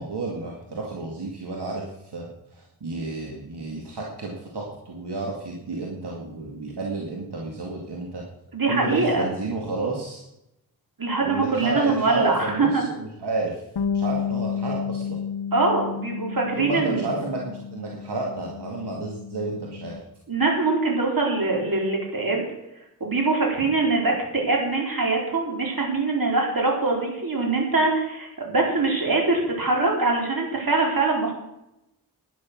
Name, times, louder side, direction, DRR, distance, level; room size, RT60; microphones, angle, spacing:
voice 1, 0.0-8.2 8.7-10.2 11.2-13.6 13.9-15.2 16.6-20.0, right 3 dB, 85° right, -1 dB, 2.2 m, -31 dB
voice 2, 8.5-9.2 11.0-12.8 15.5-17.0 20.3-22.5 23.0-31.3, right 3 dB, 60° right, 0 dB, 4.1 m, -23 dB
Bass guitar, 13.8-20.0, left 7 dB, 85° left, 0.8 m, -31 dB
11.0 x 10.5 x 6.2 m, 0.87 s
wide cardioid pair, 70°, 39 cm